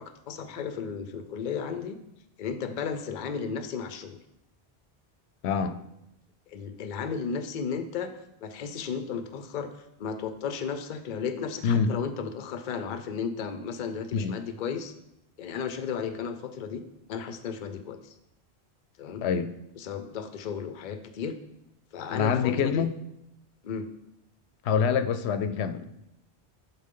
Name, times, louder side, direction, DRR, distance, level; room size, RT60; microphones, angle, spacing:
voice 1, 0.0-2.0 2.4-4.2 6.5-8.1 8.4-14.9 15.4-16.8 17.1-18.1 19.0-19.2 19.8-21.4 21.9-22.9 23.6-23.9, left 6 dB, 55° left, 9 dB, 0.6 m, -34 dB
voice 2, 5.4-5.8 11.6-11.9 14.1-14.3 19.2-19.5 22.1-22.9 24.6-25.8, left 6 dB, 90° left, 11 dB, 0.8 m, -25 dB
10.5 x 4.2 x 3.7 m, 0.83 s
omnidirectional pair, 1.1 m